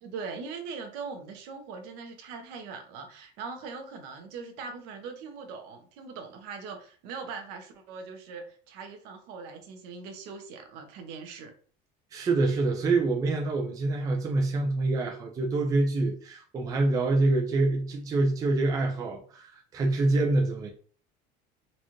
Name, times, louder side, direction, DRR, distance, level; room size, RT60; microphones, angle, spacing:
voice 1, 0.0-11.5, right 5 dB, 65° right, 0.9 m, -41 dB
voice 2, 12.1-20.7, right 2 dB, 20° right, 0.4 m, -26 dB
4.1 x 2.5 x 3.0 m
cardioid pair, 170°, 19 cm